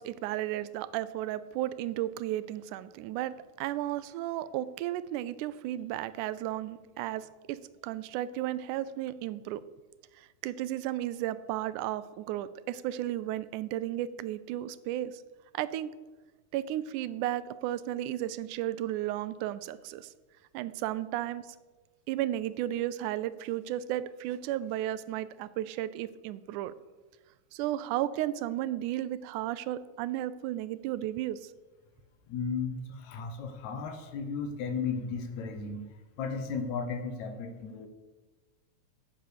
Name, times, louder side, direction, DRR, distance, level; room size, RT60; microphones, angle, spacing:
voice 1, 0.0-9.6 10.2-15.2 15.5-15.9 16.5-20.1 20.5-21.6 22.1-26.7 27.5-31.5, right 13 dB, 90° right, 16 dB, 2.1 m, -34 dB
voice 2, 32.3-37.9, left 5 dB, 70° left, 7 dB, 2.3 m, -35 dB
9.5 x 8.3 x 6.7 m, 1.2 s
omnidirectional pair, 3.5 m